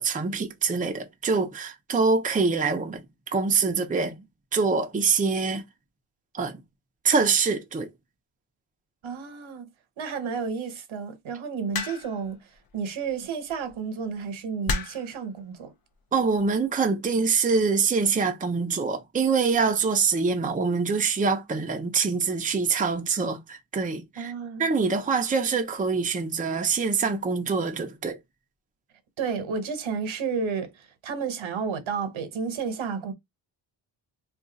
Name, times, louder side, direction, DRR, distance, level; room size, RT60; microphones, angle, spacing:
voice 1, 0.0-4.2 4.5-5.6 6.3-6.6 7.0-7.9 16.1-24.3 24.6-28.2, right 4 dB, 15° right, 0.5 m, -25 dB
voice 2, 9.0-9.6 10.0-15.7 24.2-24.6 29.2-33.1, right 5 dB, 75° right, 1.0 m, -31 dB
sound 1, 11.7-12.3 13.5-13.7 14.7-15.2 16.1-16.4, left 4 dB, 50° left, 0.6 m, -30 dB
2.4 x 2.3 x 3.9 m
cardioid pair, 100°, 47 cm